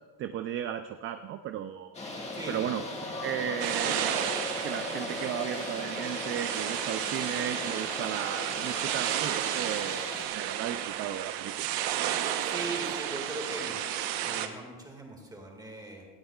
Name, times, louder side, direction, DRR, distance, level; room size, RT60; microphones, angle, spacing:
voice 1, 0.2-1.9 2.5-2.8 3.2-4.1 4.6-11.7, right 10 dB, 35° right, 9 dB, 0.4 m, -35 dB
sound 1, 1.9-10.2, left 2 dB, 15° left, 1.6 m, -38 dB
voice 2, 2.3-2.7 12.4-13.8 14.2-16.1, right 2 dB, 10° right, 1 dB, 2.0 m, -39 dB
sound 2, 3.6-14.5, right 11 dB, 90° right, 1.0 m, -32 dB
18.5 x 12.5 x 2.4 m, 1.4 s
cardioid pair, 150°, 37 cm